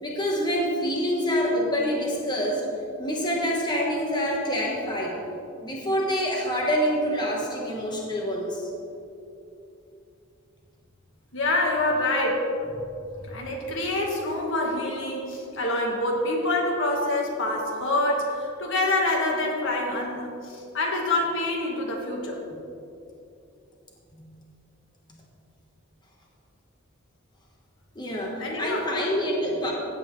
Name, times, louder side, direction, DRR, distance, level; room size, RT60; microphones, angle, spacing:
voice 1, 0.0-2.6 3.0-5.2 5.6-8.7 24.1-24.3 27.9-29.7, equal, 20° left, -2 dB, 1.3 m, -26 dB
voice 2, 11.3-12.5 13.3-22.4 28.4-28.9, left 2 dB, 65° left, 0 dB, 1.6 m, -26 dB
15.5 x 8.4 x 3.2 m, 2.7 s
head